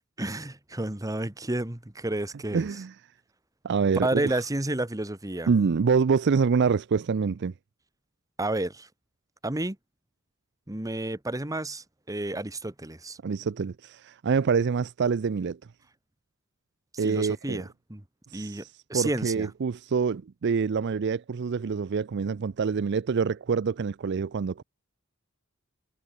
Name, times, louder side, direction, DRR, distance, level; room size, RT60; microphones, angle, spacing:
voice 1, 0.2-2.7 3.9-5.5 8.4-8.9 9.4-9.8 10.7-13.2 16.9-18.0 18.3-18.6 18.9-19.5, right 2 dB, 15° right, 1.3 m, -31 dB
voice 2, 2.5-2.9 3.6-4.3 5.5-7.5 13.2-15.6 17.0-17.6 18.3-18.7 18.9-24.6, right 5 dB, 55° right, 0.4 m, -26 dB
head